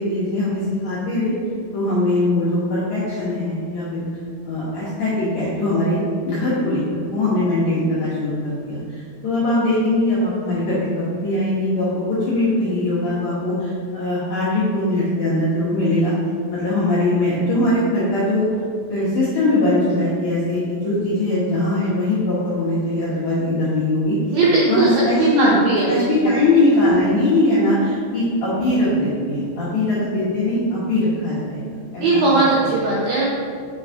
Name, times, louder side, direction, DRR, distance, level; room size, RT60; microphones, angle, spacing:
voice 1, 0.0-1.3 1.7-4.1 4.4-6.0 6.2-16.1 16.5-18.5 18.9-24.4 24.7-25.5 25.9-31.6 31.9-32.2 32.6-32.7, left 1 dB, 75° left, -10 dB, 1.6 m, -21 dB
voice 2, 24.3-24.9 25.2-26.3 32.0-33.3, right 3 dB, 80° right, -6 dB, 2.2 m, -18 dB
6.0 x 3.9 x 4.5 m, 2.2 s
omnidirectional pair, 5.0 m